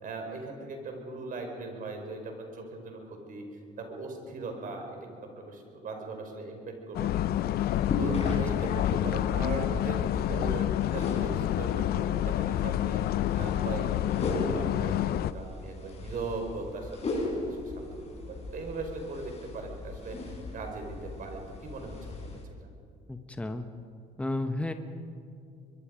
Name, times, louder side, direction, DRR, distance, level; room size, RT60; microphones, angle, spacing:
voice 1, 0.0-3.5 3.8-7.6 8.0-13.0 13.4-17.9 18.3-20.2 20.5-22.4, right 3 dB, 55° right, 3 dB, 4.7 m, -39 dB
sound 1, 6.9-15.3, left 12 dB, 65° left, 0.6 m, -28 dB
sound 2, 7.5-22.4, left 2 dB, 40° left, 5.9 m, -37 dB
voice 2, 8.2-8.7 23.1-23.6 24.2-24.7, left 2 dB, 5° left, 7 dB, 1.1 m, -33 dB
24.0 x 22.5 x 5.2 m, 2.4 s
cardioid pair, 110°, 17 cm